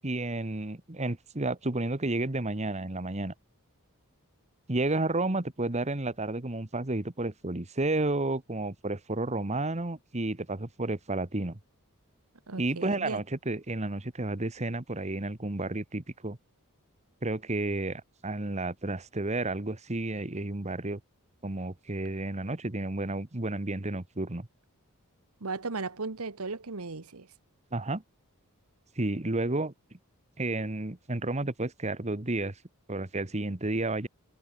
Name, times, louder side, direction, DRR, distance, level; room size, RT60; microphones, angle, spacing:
voice 1, 0.0-3.3 4.7-11.6 12.6-16.4 17.2-21.0 21.4-24.5 27.7-28.0 29.0-29.7 30.4-32.5 32.9-34.1, right 2 dB, 30° right, 1.5 m, -31 dB
voice 2, 12.5-13.2 25.4-27.3, right 3 dB, 80° right, 1.4 m, -36 dB
head